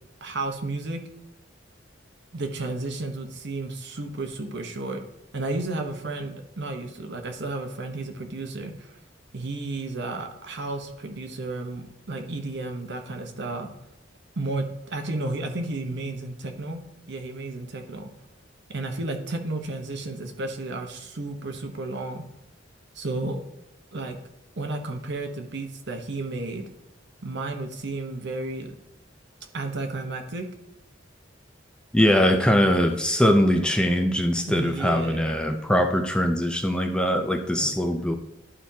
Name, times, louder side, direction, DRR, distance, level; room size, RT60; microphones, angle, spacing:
voice 1, 0.2-1.0 2.3-5.1 5.3-9.0 9.3-13.7 14.4-16.8 17.1-18.1 18.7-22.2 22.9-23.4 23.9-24.2 24.6-26.7 27.2-28.8 29.5-30.5 34.5-35.3 37.6-37.7, right 2 dB, 65° right, 4 dB, 1.0 m, -32 dB
voice 2, 31.9-38.2, equal, 5° left, 5 dB, 0.5 m, -22 dB
11.0 x 4.4 x 2.8 m, 0.91 s
head